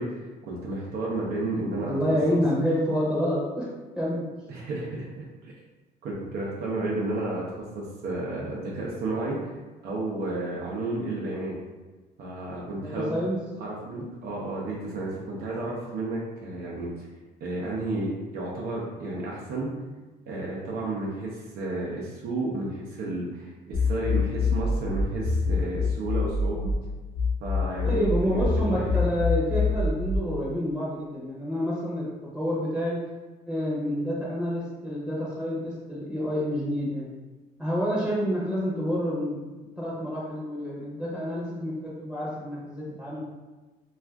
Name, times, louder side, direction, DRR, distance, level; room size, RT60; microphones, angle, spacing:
voice 1, 0.0-1.9 2.3-2.4 4.5-5.5 6.0-7.4 7.7-9.4 9.8-11.5 12.2-13.2 13.6-17.1 17.4-19.7 20.3-26.7 27.4-28.8, right 2 dB, 65° right, -4 dB, 0.6 m, -32 dB
voice 2, 1.8-3.7 4.0-4.3 12.8-13.4 27.8-33.0 33.5-37.1 37.6-39.4 39.8-43.2, equal, 5° right, -7 dB, 0.8 m, -28 dB
sound 1, 23.7-26.7 27.1-30.2, left 4 dB, 35° left, 0.7 m, -26 dB
2.4 x 2.4 x 3.3 m, 1.2 s
cardioid pair, 110°, 17 cm